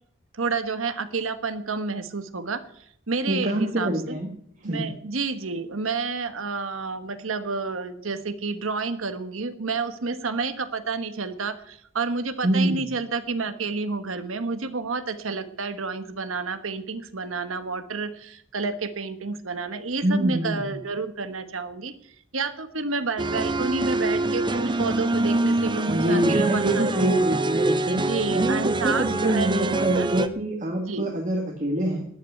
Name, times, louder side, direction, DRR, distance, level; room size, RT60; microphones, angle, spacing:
voice 1, 0.3-4.2 4.6-21.9 22.3-27.2 27.9-30.1 30.8-31.1, right 4 dB, 90° right, 10 dB, 1.3 m, -30 dB
voice 2, 3.3-4.3 4.6-4.9 12.4-12.8 20.0-20.7 25.9-32.1, right 1 dB, 40° right, 2 dB, 1.7 m, -25 dB
sound 1, 23.2-30.3, right 2 dB, 25° right, 0.7 m, -25 dB
13.0 x 8.7 x 9.4 m, 0.68 s
head